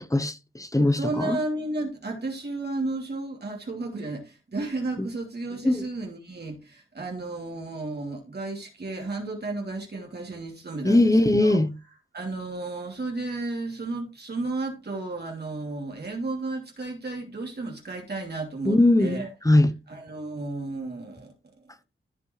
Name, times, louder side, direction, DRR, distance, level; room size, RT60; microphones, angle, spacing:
voice 1, 0.0-1.4 5.6-5.8 10.8-11.7 18.7-19.7, left 1 dB, 15° left, 0.9 m, -20 dB
voice 2, 0.8-11.6 12.1-19.3 19.9-21.3, right 2 dB, 50° right, 2.9 m, -33 dB
15.0 x 5.4 x 3.2 m
wide cardioid pair, 120°, 21 cm